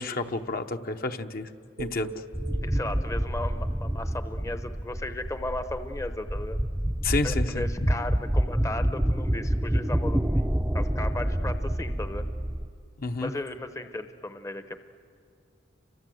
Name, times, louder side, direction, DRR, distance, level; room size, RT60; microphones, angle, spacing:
voice 1, 0.0-1.5 1.8-2.2 7.0-7.7 13.0-13.3, left 3 dB, 50° left, 6 dB, 0.9 m, -30 dB
sound 1, 1.8-5.9, right 5 dB, 60° right, 1.0 m, -46 dB
sound 2, 2.3-12.7, equal, 5° right, 0.6 m, -28 dB
voice 2, 2.6-6.6 7.2-12.2 13.2-14.9, left 1 dB, 15° left, 9 dB, 0.8 m, -36 dB
30.0 x 24.5 x 7.8 m, 2.4 s
head